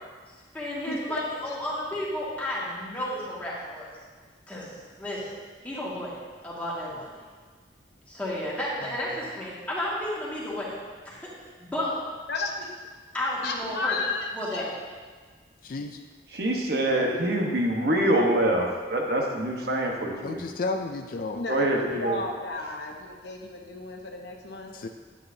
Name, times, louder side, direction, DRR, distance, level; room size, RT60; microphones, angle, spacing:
voice 1, 0.3-4.0 4.5-5.3 5.6-7.2 8.1-10.8 11.1-11.3 11.6-12.0 13.1-14.0 14.3-14.7, left 1 dB, 10° left, -7 dB, 2.0 m, -32 dB
voice 2, 0.9-1.2 12.3-12.7 13.4-14.7 21.3-24.7, left 3 dB, 65° left, 1 dB, 1.0 m, -33 dB
voice 3, 15.6-16.0 20.2-21.4 24.7-24.9, left 3 dB, 50° left, 5 dB, 0.4 m, -32 dB
voice 4, 16.3-20.5 21.5-22.2, right 1 dB, 60° right, 0 dB, 1.2 m, -25 dB
10.5 x 8.5 x 2.7 m, 1.5 s
head